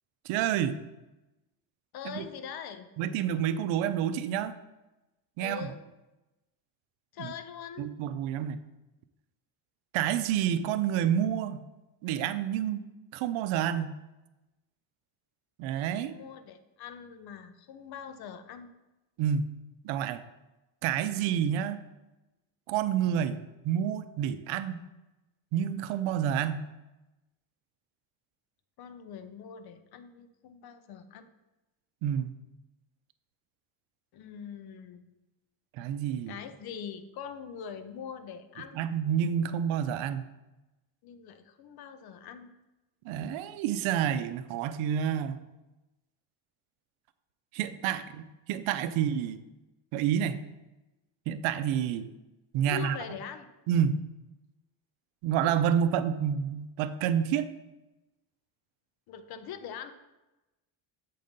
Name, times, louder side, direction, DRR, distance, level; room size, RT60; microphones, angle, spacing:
voice 1, 0.2-0.8 2.0-2.3 3.0-4.5 5.4-5.7 7.2-7.3 7.8-8.6 9.9-11.7 12.0-12.8 13.1-14.0 15.6-16.1 19.2-19.5 19.8-20.2 20.8-21.8 22.7-24.8 25.5-26.7 32.0-32.3 35.8-36.4 38.7-40.2 43.0-45.4 47.5-49.4 49.9-50.4 51.3-52.1 52.5-53.0 53.7-54.0 55.2-57.5, right 9 dB, 90° right, 12 dB, 0.6 m, -29 dB
voice 2, 1.9-2.9 5.4-5.8 7.1-7.9 16.1-18.7 28.8-31.3 34.1-35.1 36.3-38.8 41.0-42.5 48.9-49.0 52.6-53.5 59.1-59.9, left 8 dB, 55° left, 10 dB, 0.6 m, -43 dB
7.6 x 4.0 x 5.1 m, 1.0 s
cardioid pair, 150°, 46 cm